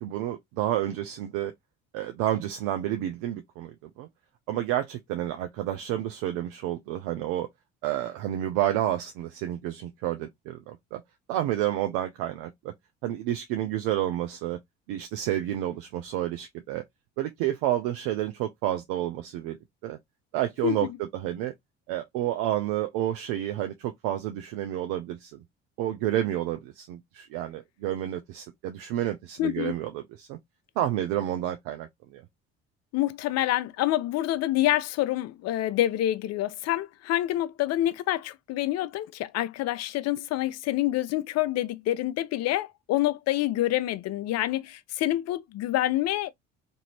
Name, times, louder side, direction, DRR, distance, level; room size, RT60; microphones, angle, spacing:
voice 1, 0.0-1.5 1.9-4.1 4.5-7.5 7.8-11.0 11.3-12.5 13.0-14.6 14.9-16.8 17.2-19.6 19.8-20.0 20.3-21.5 21.9-25.4 25.8-30.4 30.8-32.2, right 12 dB, 75° right, 0.6 m, -30 dB
voice 2, 20.6-21.0 29.4-29.7 32.9-46.3, left 14 dB, 55° left, 0.5 m, -27 dB
2.6 x 2.6 x 2.9 m
hypercardioid pair, 65°, 32 cm